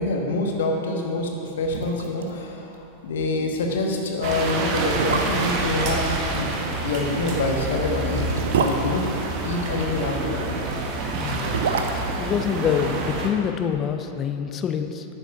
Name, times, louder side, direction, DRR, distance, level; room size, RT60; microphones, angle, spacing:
voice 1, 0.0-8.3 8.6-9.1 9.4-10.5, left 2 dB, 60° left, 2 dB, 1.2 m, -26 dB
sound 1, 1.3-1.4 1.6-2.3 2.6-2.7 3.1-3.3 4.0-4.1 4.7-5.6 7.1-9.8 11.1-13.3 13.6-13.7, right 6 dB, 65° right, 0.6 m, -28 dB
sound 2, 4.2-13.3, right 2 dB, 40° right, 1.2 m, -28 dB
voice 2, 11.2-11.7 12.2-15.1, left 8 dB, 30° left, 7 dB, 0.6 m, -26 dB
9.0 x 6.9 x 5.7 m, 2.8 s
figure-of-eight pair, 90°, 0 cm